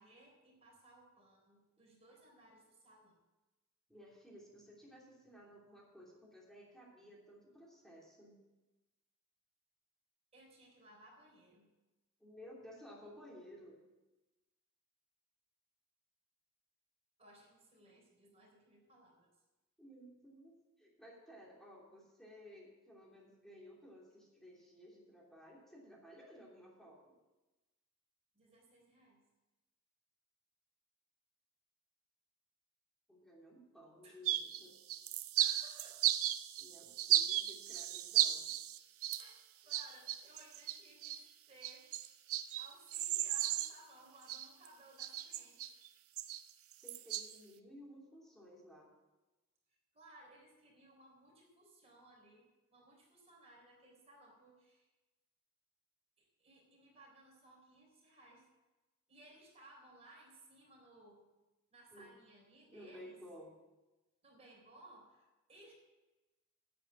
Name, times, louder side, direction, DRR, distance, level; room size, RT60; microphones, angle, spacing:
voice 1, 0.0-3.2 10.3-11.7 17.2-19.3 28.3-29.2 34.0-34.3 35.4-36.1 39.2-41.9 42.6-45.6 49.7-54.9 56.2-58.5 59.1-61.2 61.7-63.2 64.2-65.7, right 1 dB, 30° right, -1 dB, 3.6 m, -61 dB
voice 2, 3.9-8.4 12.2-13.8 19.8-27.2 33.1-34.7 36.6-38.5 46.7-48.9 61.9-62.2 62.7-63.5, equal, ahead, -4 dB, 2.9 m, -56 dB
sound 1, 34.3-34.6 34.9-39.3 39.7-41.2 41.6-43.7 44.3-44.7 45.0-45.9 46.2-47.3, right 12 dB, 70° right, 0.6 m, -35 dB
9.0 x 8.6 x 7.3 m, 1.1 s
head